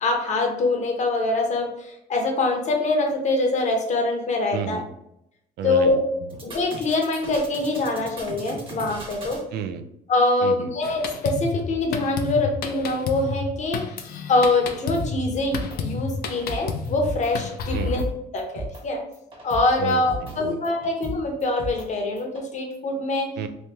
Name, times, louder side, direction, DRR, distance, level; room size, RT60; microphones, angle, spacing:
voice 1, 0.0-4.8 5.6-6.0 6.4-9.4 10.1-13.8 14.3-18.0 18.3-19.0 19.4-23.3, left 2 dB, 45° left, 2 dB, 0.9 m, -24 dB
voice 2, 4.5-4.9 5.6-6.4 9.5-9.9 10.4-10.7 17.7-18.0 19.8-20.9 23.4-23.5, right 8 dB, 75° right, 9 dB, 0.4 m, -32 dB
sound 1, 6.3-9.4 14.9-15.1 15.3-15.8 16.1-17.3 17.6-18.1 18.4-18.8 19.1-20.3 20.6-21.8 22.2-22.4, right 2 dB, 30° right, 1.1 m, -36 dB
Drum kit, 10.8-18.0, left 5 dB, 65° left, 0.5 m, -31 dB
3.1 x 2.8 x 3.4 m, 0.79 s
cardioid pair, 110°, 17 cm